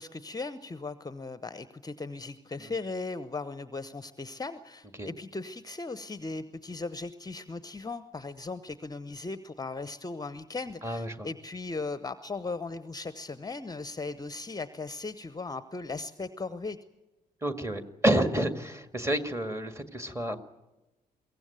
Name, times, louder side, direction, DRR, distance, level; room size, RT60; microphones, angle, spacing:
voice 1, 0.0-16.8, left 3 dB, 20° left, 14 dB, 0.9 m, -37 dB
voice 2, 10.8-11.3 17.4-20.4, right 1 dB, 15° right, 9 dB, 2.1 m, -29 dB
23.0 x 17.0 x 9.2 m, 1.0 s
figure-of-eight pair, 40°, 21 cm